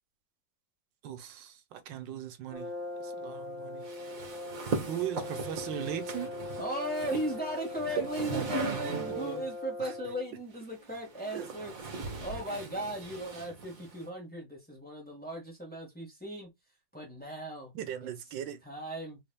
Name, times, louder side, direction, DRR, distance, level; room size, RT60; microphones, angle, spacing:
voice 1, 1.0-2.7 3.2-3.9 4.9-6.3 8.0-8.1 8.3-9.5 9.8-9.9 11.3-11.5 17.7-18.6, right 10 dB, 85° right, 1.4 m, -38 dB
Brass instrument, 2.5-10.3, left 2 dB, 25° right, 1.3 m, -41 dB
sound 1, 3.8-9.5 10.5-14.1, right 3 dB, 50° right, 1.6 m, -39 dB
voice 2, 6.6-11.7 12.2-16.5 16.9-17.7 18.0-18.1 18.6-19.2, right 1 dB, 5° left, 1.4 m, -37 dB
4.1 x 3.4 x 2.2 m
omnidirectional pair, 1.9 m